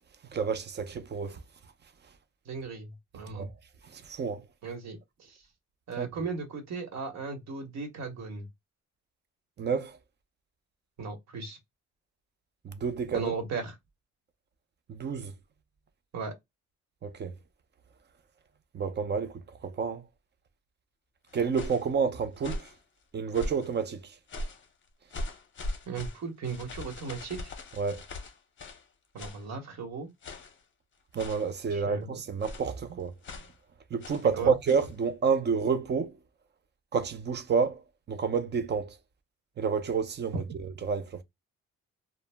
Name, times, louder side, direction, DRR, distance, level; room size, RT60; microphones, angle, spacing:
voice 1, 0.3-1.4 3.3-3.5 3.9-4.4 6.0-6.1 9.6-10.0 12.6-13.2 14.9-15.3 17.0-17.3 18.7-19.3 19.6-20.0 21.3-22.6 23.1-24.0 27.8-28.0 31.1-33.1 33.9-36.1 36.9-37.8 38.1-38.9 39.6-40.4 40.8-41.2, right 5 dB, 35° right, 0.5 m, -29 dB
voice 2, 2.5-3.5 4.6-5.3 5.9-8.5 11.0-11.6 13.1-13.7 16.1-16.3 25.9-27.5 29.1-30.1 31.7-32.1 34.4-34.5, right 5 dB, 65° right, 1.1 m, -36 dB
sound 1, 21.3-21.9 22.4-22.8 23.3-23.7 24.3-24.7 25.1-28.9 29.2-29.5 30.2-30.6 31.2-31.6 32.4-32.8 33.2-33.6 34.0-34.3 34.6-34.9, left 1 dB, 40° left, 0.7 m, -40 dB
2.1 x 2.0 x 3.3 m
cardioid pair, 90°, 30 cm